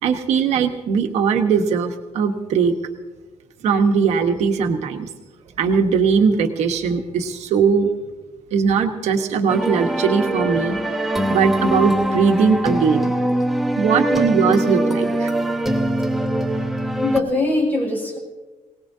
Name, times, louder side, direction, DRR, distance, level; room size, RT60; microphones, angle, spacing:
voice 1, 0.0-2.7 3.6-5.1 5.6-7.9 8.5-10.8 11.3-13.1 13.8-15.3, right 6 dB, 70° right, 3 dB, 1.3 m, -19 dB
sound 1, 9.5-17.2, right 1 dB, ahead, 0.9 m, -22 dB
voice 2, 17.0-18.2, left 2 dB, 15° left, -1 dB, 6.1 m, -21 dB
23.5 x 18.5 x 2.8 m, 1.2 s
cardioid pair, 150°, 12 cm